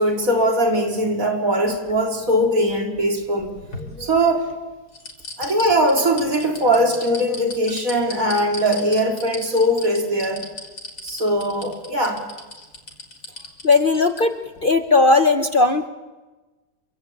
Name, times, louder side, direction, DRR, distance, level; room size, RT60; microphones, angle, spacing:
voice 1, 0.0-3.5 4.0-4.5 5.4-10.4 11.0-12.2, equal, 60° right, 2 dB, 4.2 m, -20 dB
sound 1, 3.2-4.5 4.9-14.2 14.6-14.7, left 2 dB, 80° left, 4.5 m, -36 dB
voice 2, 13.6-15.9, left 3 dB, 40° left, 8 dB, 1.0 m, -17 dB
28.0 x 25.0 x 8.6 m, 1.2 s
omnidirectional pair, 1.6 m